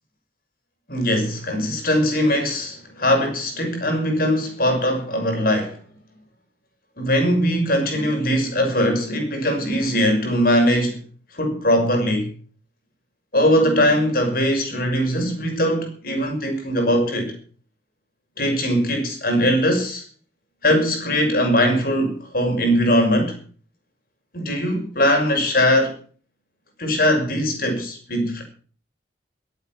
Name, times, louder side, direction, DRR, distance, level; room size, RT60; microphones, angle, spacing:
voice 1, 0.9-5.8 7.0-11.0 11.3-12.3 13.3-17.4 18.4-20.0 20.6-23.4 24.3-25.9 26.8-28.4, equal, 50° left, 6.1 m, -20 dB
22.5 x 8.8 x 6.0 m
head